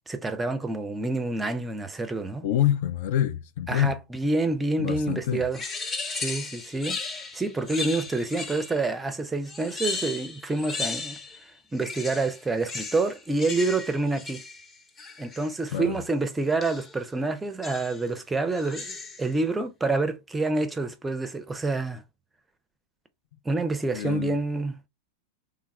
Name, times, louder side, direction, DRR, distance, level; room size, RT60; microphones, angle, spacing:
voice 1, 0.1-2.4 3.7-5.6 6.1-14.4 15.2-22.0 23.4-24.9, right 3 dB, 10° right, 0.5 m, -28 dB
voice 2, 2.4-4.0 4.8-5.5 15.7-16.0 23.9-24.4, left 11 dB, 50° left, 0.3 m, -26 dB
sound 1, 5.5-8.9 9.4-11.4 11.7-15.6 16.6-17.0 17.6-18.1 18.5-19.3, left 4 dB, 20° left, 0.7 m, -36 dB
3.5 x 2.3 x 3.2 m
figure-of-eight pair, 90°, 0 cm